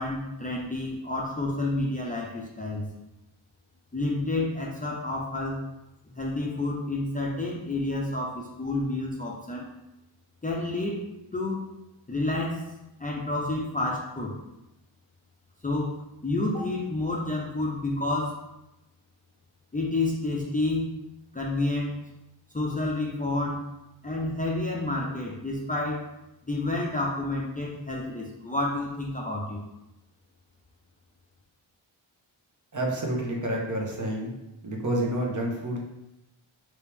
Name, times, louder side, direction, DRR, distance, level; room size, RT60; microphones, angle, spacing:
voice 1, 0.0-2.9 3.9-5.6 6.1-9.7 10.4-11.0 11.3-11.7 12.1-12.6 13.0-14.4 15.6-18.4 19.7-20.9 21.3-22.0 22.5-23.6 24.0-26.1 26.5-29.6, left 2 dB, 15° left, -3 dB, 0.6 m, -29 dB
voice 2, 32.7-34.3 34.6-35.8, right 1 dB, 40° right, -1 dB, 1.0 m, -29 dB
3.0 x 3.0 x 3.4 m, 0.93 s
cardioid pair, 55°, 48 cm